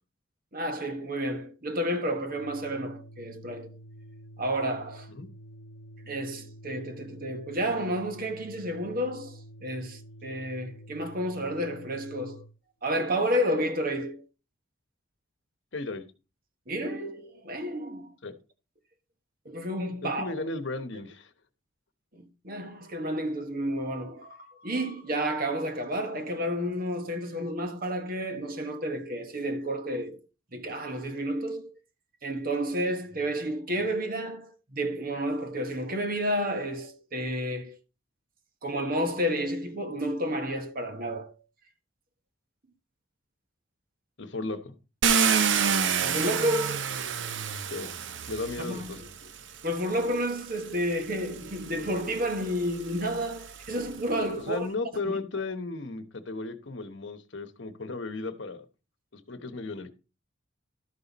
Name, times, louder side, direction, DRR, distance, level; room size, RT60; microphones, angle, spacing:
voice 1, 0.5-3.7 4.4-5.1 6.1-12.4 12.8-14.3 16.7-18.1 19.4-20.3 22.1-30.2 30.5-31.7 32.2-37.8 38.6-41.3 46.0-46.9 48.6-49.1 49.6-54.7 55.0-55.2, equal, 45° right, 1.3 m, -31 dB
Organ, 2.3-12.6, right 1 dB, 90° left, 0.6 m, -48 dB
voice 2, 15.7-16.0 18.2-18.4 20.0-21.3 44.2-44.7 47.7-47.9 48.3-49.1 54.3-58.6 59.1-59.9, left 3 dB, 65° left, 1.1 m, -35 dB
Car, 45.0-49.1 50.1-50.2 50.7-54.0, right 6 dB, 65° right, 0.6 m, -28 dB
12.5 x 5.6 x 4.1 m
head